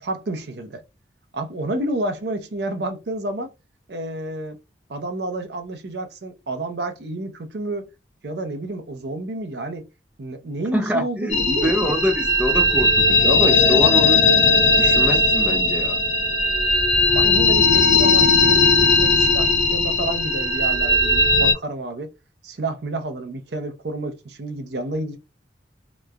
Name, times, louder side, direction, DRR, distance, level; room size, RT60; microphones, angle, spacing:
voice 1, 0.0-0.8 1.3-3.5 3.9-4.6 4.9-7.9 8.2-9.9 10.2-12.0 17.1-22.1 22.4-25.2, right 2 dB, 65° right, 0.6 m, -30 dB
voice 2, 10.7-14.2 14.8-16.0, equal, 5° right, 0.3 m, -25 dB
sound 1, 11.3-21.5, left 3 dB, 80° left, 0.6 m, -17 dB
3.0 x 2.1 x 2.3 m
head